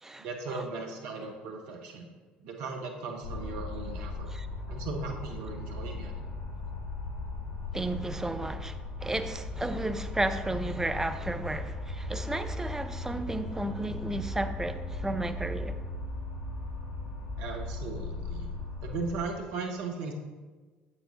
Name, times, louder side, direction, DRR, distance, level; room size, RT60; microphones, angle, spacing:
voice 1, 0.2-2.1 2.4-4.3 4.7-6.1 17.4-18.5 18.8-20.1, right 4 dB, 60° right, 1.1 m, -37 dB
sound 1, 3.2-19.1, left 2 dB, 90° right, 2.2 m, -37 dB
voice 2, 7.7-15.8, right 2 dB, 10° right, 0.5 m, -33 dB
8.4 x 7.5 x 2.7 m
figure-of-eight pair, 60°, 5 cm